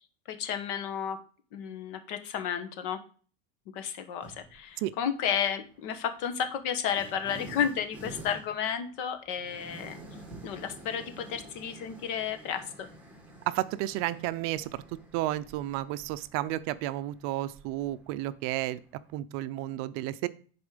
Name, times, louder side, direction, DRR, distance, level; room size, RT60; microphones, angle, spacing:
voice 1, 0.3-1.2 1.5-3.0 3.7-10.0 10.4-12.9, left 8 dB, 60° left, 8 dB, 1.5 m, -32 dB
gas vuur dakwerken gasbrander luchtballon, 4.2-4.7 5.7-19.1, right 2 dB, 5° right, 2.0 m, -49 dB
voice 2, 13.5-14.7 15.1-18.8 19.1-20.3, right 15 dB, 50° right, 14 dB, 0.5 m, -32 dB
10.5 x 4.3 x 5.1 m, 0.41 s
supercardioid pair, 155°, 29 cm